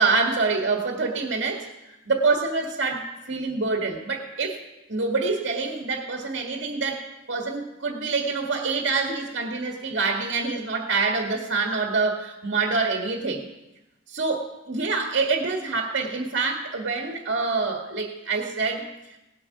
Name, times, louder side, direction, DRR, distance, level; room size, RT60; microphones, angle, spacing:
voice 1, 0.0-1.7 2.1-4.6 4.9-13.4 14.1-18.9, right 4 dB, 65° right, 2 dB, 1.6 m, -26 dB
18.5 x 8.4 x 5.9 m, 0.97 s
head